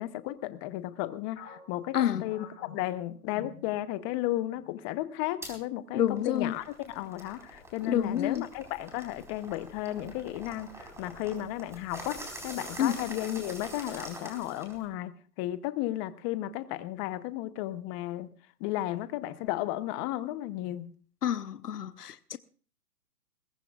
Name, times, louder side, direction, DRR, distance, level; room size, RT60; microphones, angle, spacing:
voice 1, 0.0-2.5 2.7-15.1 15.4-18.3 18.6-20.9, left 15 dB, 20° left, 0.7 m, -34 dB
sound 1, 1.4-4.2 4.5-4.7 5.4-5.8, left 9 dB, 55° left, 4.5 m, -48 dB
voice 2, 1.9-2.3 5.9-6.5 7.9-8.4 12.8-13.0 21.2-22.4, left 10 dB, 90° left, 0.9 m, -28 dB
sound 2, 5.4-5.6 6.1-14.9, right 1 dB, 5° right, 4.3 m, -45 dB
21.5 x 18.0 x 2.4 m
hypercardioid pair, 140°, 46 cm